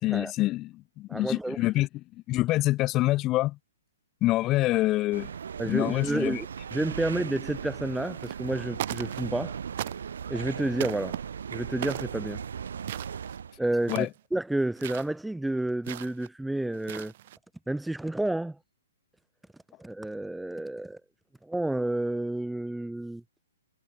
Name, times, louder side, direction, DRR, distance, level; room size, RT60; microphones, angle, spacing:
voice 1, 0.0-3.6 4.2-5.3 5.6-6.4 13.9-14.1, left 17 dB, 25° left, 2.2 m, -26 dB
voice 2, 1.1-1.6 5.6-6.5 6.7-9.6 10.3-11.2 11.5-12.4 13.6-17.1 17.7-18.6 19.8-21.0 21.4-23.2, right 1 dB, 5° right, 1.6 m, -30 dB
sound 1, 5.1-13.6, right 7 dB, 75° right, 3.5 m, -37 dB
sound 2, 8.2-8.5 8.8-9.4 9.8-10.3 10.8-11.2 11.8-12.2 12.8-13.4 13.8-14.2 14.8-15.1 15.9-16.3 16.7-17.4, right 14 dB, 45° right, 3.8 m, -37 dB
hypercardioid pair, 150°, 0 cm